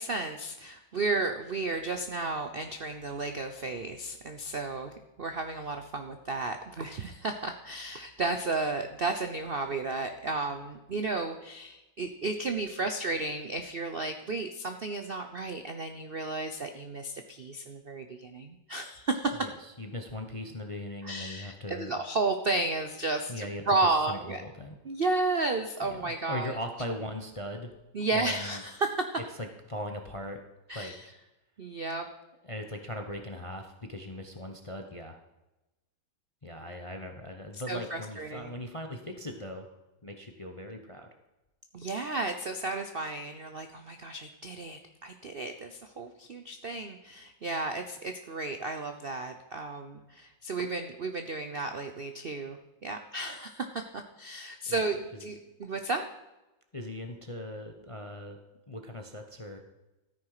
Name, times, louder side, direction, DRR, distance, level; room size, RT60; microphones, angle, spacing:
voice 1, 0.0-19.4 21.0-24.4 24.8-26.6 27.9-29.1 30.7-31.0 31.6-32.1 37.7-38.6 41.7-56.0, right 3 dB, 55° right, 6 dB, 0.6 m, -33 dB
voice 2, 19.4-22.0 23.3-24.8 25.8-27.7 28.1-28.6 29.1-30.4 30.7-31.1 32.4-35.2 36.4-39.7 40.0-41.1 54.7-54.8 55.1-55.2 56.7-58.4 58.7-59.6, left 1 dB, 25° left, 5 dB, 0.7 m, -39 dB
14.0 x 9.7 x 5.0 m, 1.0 s
omnidirectional pair, 2.1 m